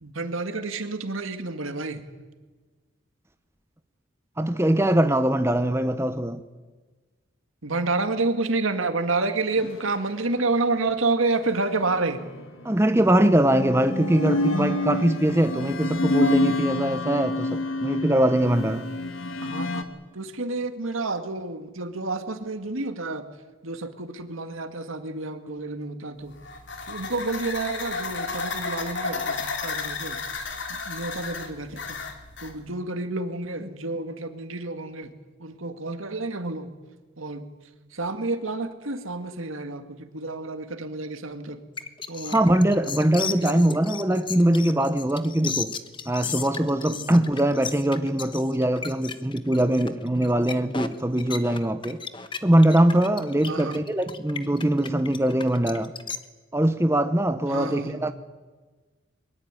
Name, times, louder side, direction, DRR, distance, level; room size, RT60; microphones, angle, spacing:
voice 1, 0.0-2.0 7.6-12.2 19.4-19.9 20.1-23.2 23.6-26.3 26.9-30.2 30.7-32.0 32.4-35.1 35.4-36.7 37.2-37.4 37.9-41.6 42.1-42.5 43.4-43.6 46.9-47.1 53.5-53.8 57.5-58.0, right 3 dB, 85° right, 2.1 m, -29 dB
voice 2, 4.4-6.4 12.6-18.8 42.3-45.8 46.1-52.0 52.4-55.9 56.5-58.1, right 1 dB, 15° right, 0.9 m, -22 dB
sound 1, 11.5-12.4 13.3-19.8, left 2 dB, 80° left, 2.1 m, -27 dB
sound 2, 26.3-32.5, left 4 dB, 65° left, 3.0 m, -33 dB
sound 3, 41.8-56.2, left 6 dB, 25° left, 1.1 m, -35 dB
23.0 x 21.0 x 9.1 m
head